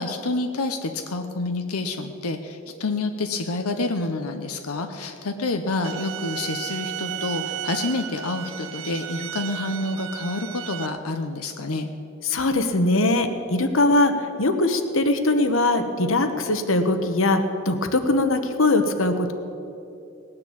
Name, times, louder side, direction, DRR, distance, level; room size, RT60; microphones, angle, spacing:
voice 1, 0.0-11.9, left 2 dB, 90° left, 6 dB, 0.8 m, -28 dB
sound 1, 5.8-10.9, right 11 dB, 70° right, 0.6 m, -34 dB
voice 2, 12.2-19.3, left 2 dB, 65° left, 7 dB, 1.1 m, -21 dB
19.5 x 6.8 x 8.5 m, 2.7 s
head